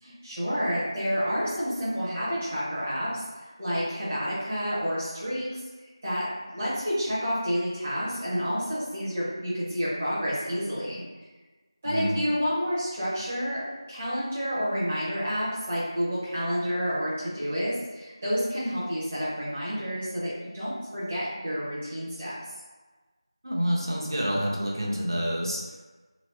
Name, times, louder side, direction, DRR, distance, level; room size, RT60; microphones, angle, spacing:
voice 1, 0.0-5.6 6.0-11.0 11.8-13.6 13.9-22.4, equal, 15° right, -11 dB, 0.8 m, -29 dB
voice 2, 11.8-12.2 23.4-25.6, equal, 50° right, -3 dB, 0.6 m, -28 dB
3.0 x 2.8 x 3.2 m, 1.3 s
figure-of-eight pair, 175°, 3 cm